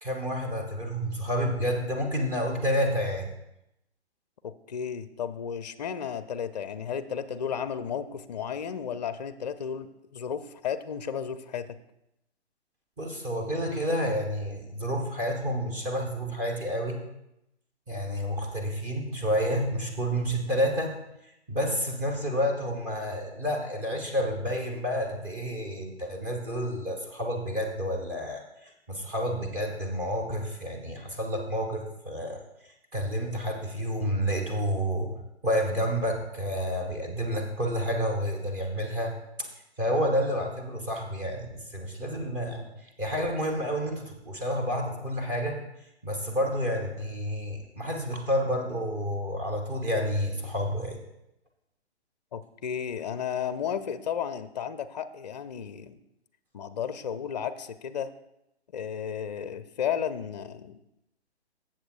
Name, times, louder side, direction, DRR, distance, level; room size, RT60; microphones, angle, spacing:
voice 1, 0.0-3.3 13.0-17.0 17.9-21.1 21.5-32.4 32.9-39.5 39.8-45.7 46.0-51.0, equal, 15° right, 0 dB, 0.9 m, -30 dB
voice 2, 4.4-11.8 52.3-56.0 56.5-58.1 58.7-60.8, left 8 dB, 40° left, 12 dB, 0.5 m, -33 dB
14.0 x 7.5 x 2.4 m, 0.85 s
figure-of-eight pair, 130°, 34 cm